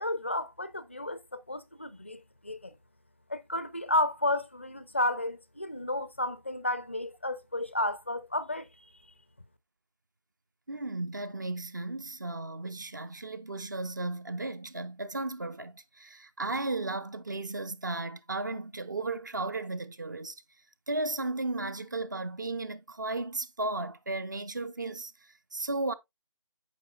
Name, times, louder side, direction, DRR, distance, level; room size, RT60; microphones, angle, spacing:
voice 1, 0.0-2.7 3.3-8.7, left 1 dB, 20° left, 0.4 m, -32 dB
voice 2, 10.7-20.4 20.9-25.9, right 2 dB, 35° right, 0.6 m, -35 dB
8.9 x 5.8 x 2.3 m
figure-of-eight pair, 160°, 18 cm